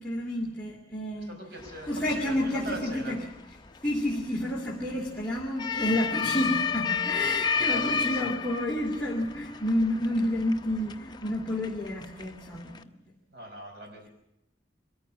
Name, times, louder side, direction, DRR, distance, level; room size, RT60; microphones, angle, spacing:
voice 1, 0.0-1.3 1.9-3.2 3.8-12.9, left 1 dB, 5° left, -4 dB, 2.7 m, -30 dB
voice 2, 1.2-3.2 7.5-8.3 13.3-14.1, right 1 dB, 60° right, 4 dB, 5.1 m, -41 dB
sound 1, 1.6-12.8, left 6 dB, 25° left, 0.8 m, -33 dB
22.5 x 14.5 x 8.6 m, 0.88 s
head